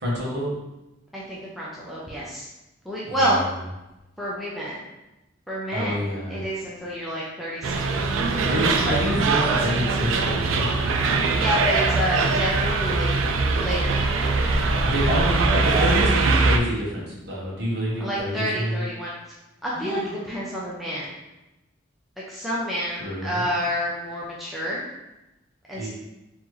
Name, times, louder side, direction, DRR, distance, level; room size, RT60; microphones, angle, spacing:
voice 1, 0.0-0.5 3.1-3.4 5.7-6.4 8.5-10.7 14.8-18.8 19.7-20.1 23.0-23.5 25.8-25.9, equal, 55° right, -5 dB, 1.3 m, -27 dB
voice 2, 1.1-2.5 2.8-3.4 4.2-4.8 5.5-8.0 8.3-8.8 11.4-13.2 13.6-14.0 14.3-14.6 18.0-19.2 19.6-21.1 22.3-24.8 25.7-25.9, equal, ahead, -7 dB, 0.6 m, -29 dB
sound 1, 7.6-16.6, right 3 dB, 75° right, 0.4 m, -22 dB
4.1 x 3.0 x 3.2 m, 0.96 s
head